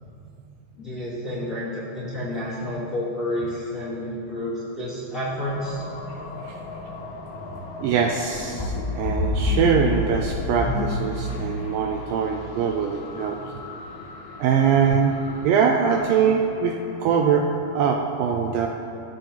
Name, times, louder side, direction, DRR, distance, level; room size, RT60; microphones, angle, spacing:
voice 1, 0.8-5.7, left 1 dB, 65° left, -10 dB, 0.8 m, -30 dB
sound 1, 5.5-17.4, left 3 dB, 80° left, 2.9 m, -39 dB
voice 2, 7.8-13.5 14.4-15.1 15.4-17.5 17.8-18.7, right 6 dB, 85° right, 2 dB, 2.0 m, -22 dB
sound 2, 8.3-11.7, left 2 dB, 15° left, 1.4 m, -27 dB
15.5 x 7.4 x 2.9 m, 2.6 s
omnidirectional pair, 4.4 m